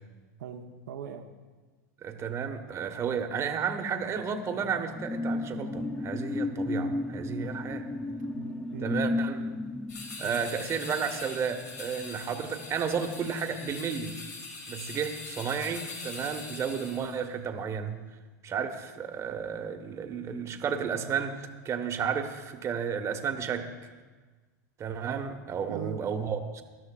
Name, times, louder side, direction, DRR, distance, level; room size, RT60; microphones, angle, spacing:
voice 1, 0.4-1.2 8.3-8.9 10.2-10.4 25.7-26.0, right 9 dB, 80° right, 3 dB, 1.0 m, -40 dB
voice 2, 2.0-7.9 8.8-9.6 10.2-14.2 14.7-18.0 18.4-23.7 24.8-26.6, right 6 dB, 30° right, 5 dB, 1.3 m, -32 dB
sound 1, 4.1-13.1 13.4-13.7, left 2 dB, 10° left, 0.6 m, -34 dB
sound 2, 9.9-17.2, left 3 dB, 80° left, 4.0 m, -42 dB
20.0 x 13.0 x 2.4 m, 1.3 s
hypercardioid pair, 110°, 9 cm